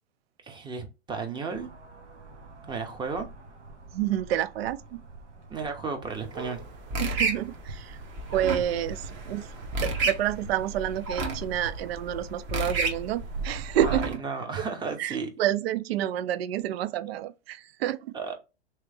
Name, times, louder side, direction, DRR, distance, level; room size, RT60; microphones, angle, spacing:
voice 1, 0.4-1.7 2.7-3.3 5.5-6.7 13.8-15.3 18.1-18.3, right 4 dB, 15° right, 0.8 m, -33 dB
sound 1, 1.5-14.0, right 2 dB, 85° right, 1.1 m, -42 dB
voice 2, 3.9-5.0 7.0-8.0 8.3-9.5 9.8-14.2 14.6-14.7 15.0-18.1, right 11 dB, 60° right, 0.5 m, -29 dB
sound 2, 6.1-14.2, right 2 dB, 35° right, 1.1 m, -33 dB
3.4 x 3.1 x 3.3 m
hypercardioid pair, 115°, 35 cm